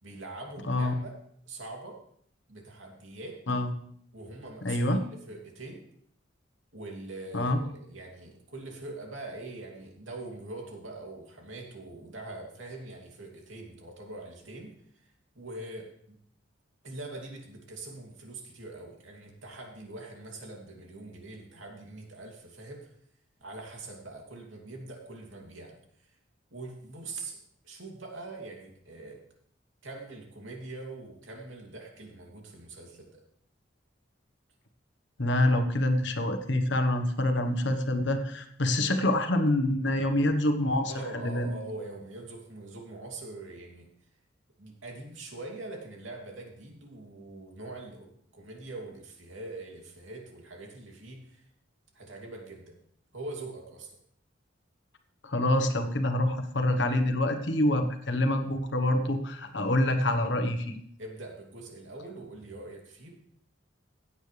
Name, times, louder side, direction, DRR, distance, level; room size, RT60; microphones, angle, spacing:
voice 1, 0.0-1.1 1.5-2.0 2.5-3.4 4.1-5.0 5.3-5.8 6.7-14.7 15.0-16.2 16.8-22.9 23.4-26.1 26.5-27.4 27.6-29.2 29.8-33.2 40.9-43.9 44.6-51.5 51.9-52.7 53.1-54.0 61.0-63.1, right 2 dB, 85° right, 0 dB, 2.8 m, -43 dB
voice 2, 4.6-5.0 7.3-7.6 35.2-41.5 55.2-60.7, left 1 dB, 65° left, 7 dB, 1.2 m, -26 dB
16.5 x 8.6 x 3.4 m, 0.66 s
head